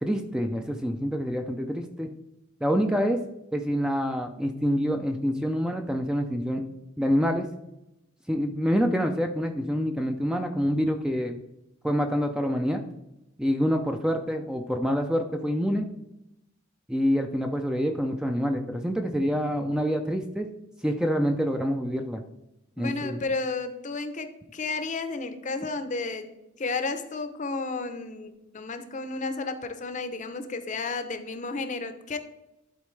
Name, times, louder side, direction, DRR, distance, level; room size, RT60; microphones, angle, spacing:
voice 1, 0.0-2.1 2.6-3.2 3.5-6.6 7.0-7.5 8.3-11.4 11.8-12.8 13.4-15.9 16.9-20.5 20.8-22.2 22.8-23.2, equal, 5° right, 5 dB, 0.3 m, -26 dB
voice 2, 22.8-32.2, left 3 dB, 35° left, 9 dB, 0.6 m, -32 dB
11.5 x 4.1 x 3.2 m, 0.91 s
head